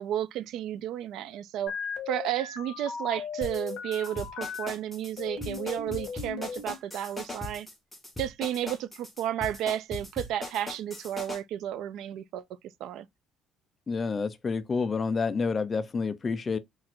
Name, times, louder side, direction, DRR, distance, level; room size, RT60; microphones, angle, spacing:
voice 1, 0.0-1.7 2.1-7.7 8.2-12.4 12.8-13.1, right 11 dB, 65° right, 0.4 m, -32 dB
sound 1, 1.7-4.7 5.2-6.8, left 6 dB, 60° left, 1.6 m, -37 dB
sound 2, 3.4-11.4, left 2 dB, 5° left, 1.2 m, -39 dB
voice 2, 13.9-16.6, left 4 dB, 25° left, 0.5 m, -29 dB
3.9 x 2.4 x 4.4 m
cardioid pair, 150°, 0 cm